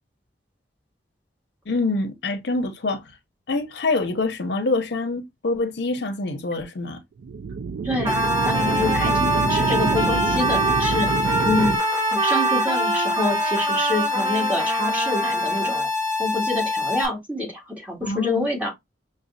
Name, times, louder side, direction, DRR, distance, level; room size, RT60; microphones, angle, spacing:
voice 1, 1.7-3.0 3.5-7.0 18.0-18.5, left 3 dB, 70° left, 0.7 m, -25 dB
sound 1, 7.2-11.8, right 5 dB, 65° right, 0.3 m, -26 dB
voice 2, 7.8-8.2 8.4-11.1 11.4-11.8 12.1-15.9 16.2-18.7, left 2 dB, 10° right, 2.0 m, -26 dB
Trumpet, 8.0-15.9, right 4 dB, 25° right, 0.6 m, -26 dB
sound 2, 8.1-17.1, left 3 dB, 15° left, 1.6 m, -25 dB
6.0 x 2.2 x 2.6 m
head